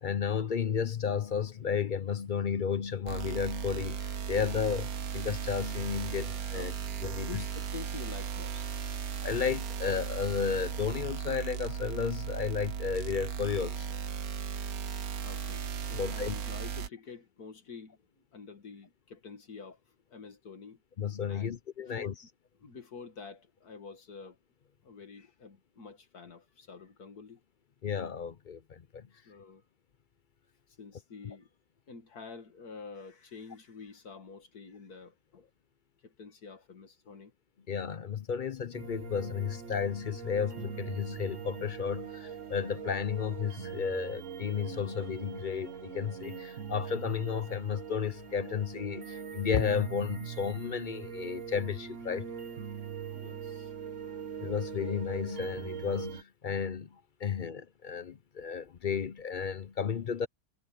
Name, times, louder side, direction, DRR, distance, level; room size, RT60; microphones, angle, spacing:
voice 1, 0.0-6.7 7.0-7.4 9.2-13.9 15.9-16.3 21.0-22.1 27.8-29.1 37.7-52.3 54.4-60.3, left 7 dB, 50° left, 0.6 m, -33 dB
sound 1, 3.1-16.9, right 7 dB, 75° right, 1.5 m, -36 dB
voice 2, 7.0-8.8 15.2-20.8 21.3-22.2 22.6-24.4 24.8-27.4 29.1-29.6 30.7-31.5 31.9-35.5 36.0-37.3 53.1-53.7, left 5 dB, 80° left, 2.6 m, -48 dB
sound 2, 38.7-56.2, right 8 dB, 55° right, 1.5 m, -42 dB
omnidirectional pair, 1.6 m